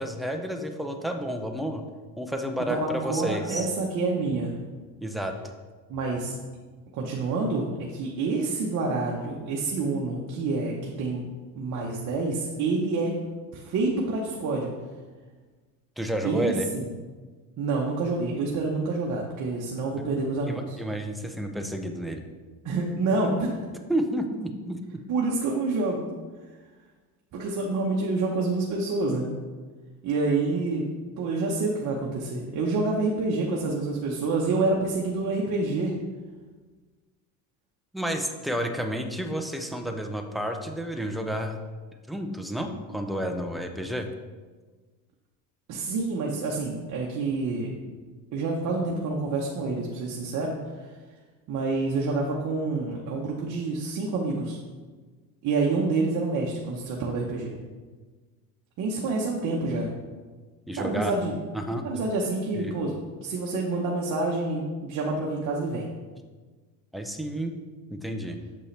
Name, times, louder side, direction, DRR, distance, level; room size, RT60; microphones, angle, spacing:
voice 1, 0.0-1.8 2.2-3.7 5.0-5.4 16.0-16.7 19.9-20.0 20.5-22.2 23.9-25.0 37.9-41.6 42.1-44.1 60.7-61.1 61.5-62.0 62.5-62.7 66.9-67.5 67.9-68.4, equal, ahead, 4 dB, 0.4 m, -31 dB
voice 2, 2.7-4.5 5.9-6.3 6.9-11.2 11.5-13.1 13.5-14.7 16.2-16.9 17.6-20.6 22.6-23.6 25.1-26.0 27.3-29.3 30.0-30.9 31.2-35.9 45.7-47.7 48.3-50.5 51.5-54.6 55.4-57.5 58.8-59.9 60.7-61.3 61.8-62.9 63.2-65.9, right 3 dB, 45° right, -2 dB, 1.0 m, -27 dB
7.1 x 5.4 x 3.3 m, 1.4 s
cardioid pair, 120°, 41 cm